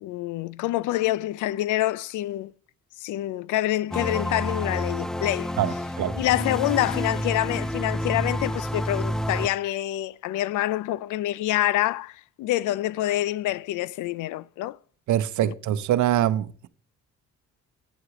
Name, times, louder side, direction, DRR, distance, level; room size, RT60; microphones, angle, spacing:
voice 1, 0.0-2.5 3.0-5.8 6.2-14.8 15.4-15.6, left 15 dB, 80° left, 0.5 m, -26 dB
sound 1, 3.9-9.5, equal, ahead, 0.3 m, -29 dB
voice 2, 5.6-6.1 15.1-16.7, right 12 dB, 75° right, 0.7 m, -24 dB
8.9 x 7.9 x 2.9 m
cardioid pair, 90°, 30 cm